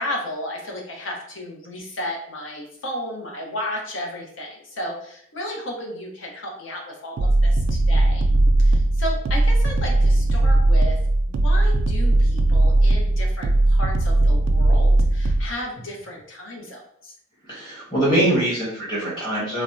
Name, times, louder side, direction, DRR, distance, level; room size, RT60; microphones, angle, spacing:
voice 1, 0.0-8.2 8.6-11.0 11.3-17.1, left 1 dB, 65° left, 0 dB, 0.8 m, -33 dB
sound 1, 7.2-15.5, right 2 dB, 75° right, 0.3 m, -18 dB
voice 2, 17.5-19.6, right 1 dB, 20° left, -8 dB, 1.1 m, -23 dB
3.3 x 2.1 x 2.5 m, 0.66 s
head